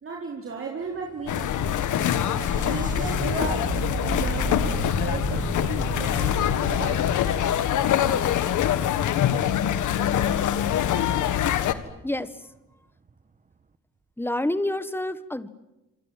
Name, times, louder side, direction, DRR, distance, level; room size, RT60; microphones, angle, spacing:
voice 1, 0.0-1.8 2.5-7.4, right 4 dB, 45° right, -1 dB, 4.5 m, -36 dB
sound 1, 1.0-8.6 11.9-12.0 13.1-13.2, right 4 dB, 25° right, 1.3 m, -34 dB
sound 2, 1.3-11.7, left 10 dB, 75° left, 1.7 m, -24 dB
voice 2, 12.0-12.4 14.2-15.5, left 1 dB, 5° left, 14 dB, 1.5 m, -28 dB
27.5 x 26.0 x 7.5 m, 0.97 s
cardioid pair, 90°, 30 cm